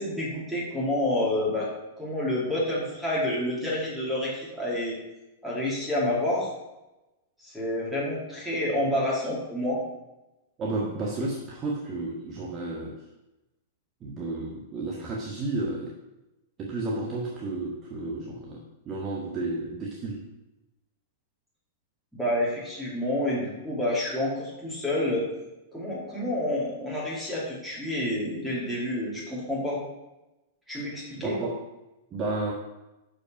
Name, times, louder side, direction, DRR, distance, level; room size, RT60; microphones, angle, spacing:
voice 1, 0.0-1.7 2.0-5.0 5.4-6.5 7.4-9.8 22.1-25.2 25.7-29.8 30.7-31.4, left 1 dB, 5° right, -6 dB, 2.7 m, -28 dB
voice 2, 10.6-12.9 14.0-16.0 16.6-20.2 31.2-31.6 32.1-32.5, right 2 dB, 30° right, -2 dB, 1.2 m, -32 dB
6.4 x 5.2 x 5.8 m, 0.98 s
hypercardioid pair, 115°, 0 cm